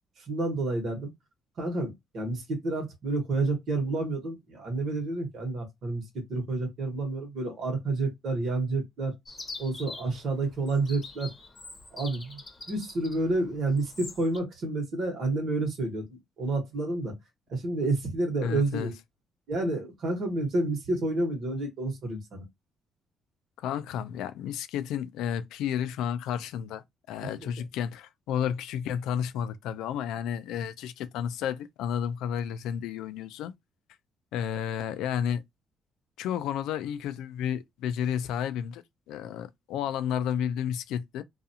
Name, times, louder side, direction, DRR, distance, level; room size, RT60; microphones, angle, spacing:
voice 1, 0.2-1.1 1.6-9.2 9.6-11.3 11.9-12.4 12.7-17.1 17.5-19.0 19.5-22.4 27.4-27.5, right 2 dB, 65° right, 1.1 m, -29 dB
Chirp tweet, 9.2-14.4, left 3 dB, 30° left, 0.8 m, -44 dB
voice 2, 18.4-18.9 23.6-33.5 34.3-35.4 36.2-38.8 39.1-41.2, left 9 dB, 90° left, 0.3 m, -32 dB
2.4 x 2.3 x 2.7 m
cardioid pair, 90°, 0 cm